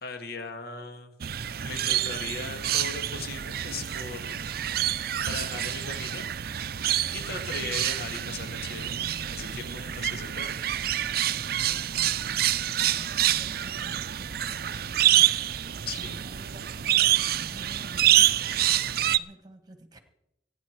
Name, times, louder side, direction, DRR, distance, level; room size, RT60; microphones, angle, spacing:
voice 1, 0.0-4.6 4.9-6.3 7.1-9.0 9.2-10.5 15.9-16.2, left 3 dB, 55° left, 5 dB, 2.1 m, -39 dB
sound 1, 1.2-19.2, right 12 dB, 55° right, 0.5 m, -27 dB
voice 2, 7.1-7.5 11.6-20.0, right 1 dB, 20° right, 7 dB, 1.6 m, -50 dB
24.5 x 9.7 x 4.7 m, 0.85 s
head